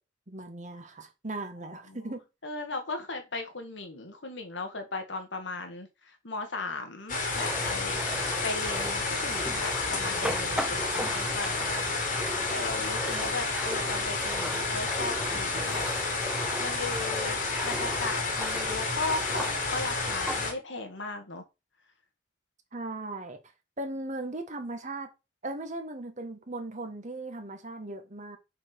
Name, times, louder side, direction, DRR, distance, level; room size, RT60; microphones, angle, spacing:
voice 1, 0.3-2.2 13.1-13.3 22.7-23.4 23.8-25.1 25.4-28.4, right 2 dB, 40° right, 1.6 m, -38 dB
voice 2, 2.4-8.1 8.4-12.2 12.5-15.9 16.6-21.4, left 3 dB, 75° left, 1.9 m, -37 dB
sound 1, 7.1-20.5, left 3 dB, 50° left, 2.3 m, -30 dB
sound 2, 7.3-20.5, right 1 dB, 5° right, 0.6 m, -38 dB
5.8 x 5.0 x 6.0 m
head